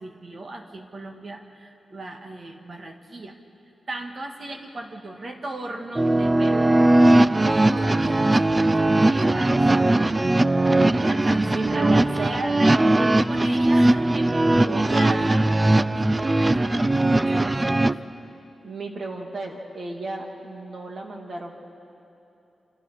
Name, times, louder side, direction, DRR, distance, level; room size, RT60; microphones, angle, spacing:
voice 1, 0.0-3.4 3.9-6.8 7.4-18.0, right 2 dB, 40° right, 4 dB, 1.8 m, -37 dB
sound 1, 6.0-17.9, right 2 dB, 20° right, 0.4 m, -19 dB
voice 2, 11.5-12.4 14.7-15.2 18.6-21.6, right 2 dB, 55° right, 1 dB, 2.6 m, -33 dB
28.5 x 27.0 x 4.9 m, 2.9 s
wide cardioid pair, 140°, 0 cm